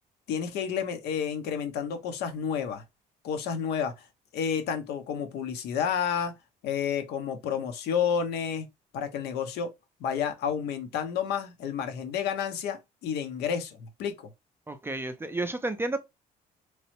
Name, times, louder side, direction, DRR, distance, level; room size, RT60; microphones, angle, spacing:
voice 1, 0.3-2.8 3.2-4.0 4.3-6.4 6.6-8.7 8.9-9.7 10.0-14.3, left 7 dB, 80° left, 0.6 m, -30 dB
voice 2, 14.7-16.0, right 2 dB, 15° right, 0.3 m, -31 dB
3.0 x 2.0 x 2.9 m
cardioid pair, 110°, 17 cm